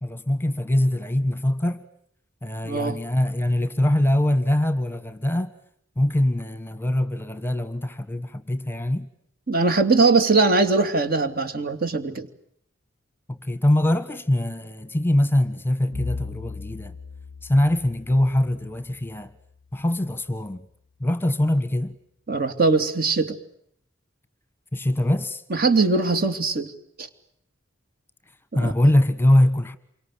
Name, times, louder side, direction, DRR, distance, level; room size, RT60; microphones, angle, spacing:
voice 1, 0.0-1.8 2.4-5.5 6.0-9.1 13.3-16.9 17.4-19.3 19.7-20.7 21.0-22.0 24.7-25.4 28.5-29.8, left 1 dB, 10° left, 1.3 m, -23 dB
voice 2, 2.6-3.0 9.5-12.3 22.3-23.4 25.5-26.7 27.0-27.1 28.5-28.7, right 3 dB, 50° right, 2.8 m, -21 dB
Bowed string instrument, 15.9-20.1, left 4 dB, 85° right, 5.2 m, -38 dB
28.0 x 24.5 x 8.5 m
head